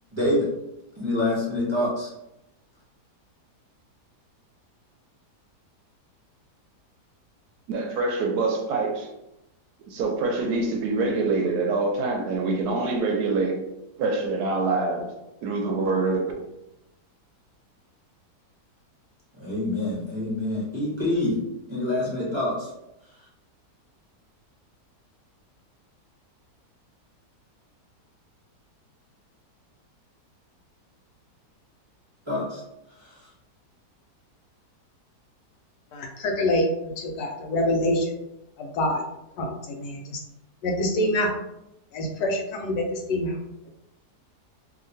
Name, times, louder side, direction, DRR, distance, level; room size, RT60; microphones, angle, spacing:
voice 1, 0.1-0.5 1.0-2.1 19.3-21.4 21.7-22.7 32.3-32.6 33.0-33.2, left 1 dB, 25° right, -7 dB, 0.7 m, -26 dB
voice 2, 7.7-9.1 9.9-13.6 14.0-15.0 15.4-16.2, right 3 dB, 75° right, 1 dB, 1.1 m, -25 dB
voice 3, 35.9-36.7 37.0-38.1 38.6-39.0 39.4-40.2 40.6-41.3 41.9-43.4, left 1 dB, 80° left, 2 dB, 1.2 m, -26 dB
2.8 x 2.8 x 2.6 m, 0.87 s
omnidirectional pair, 1.8 m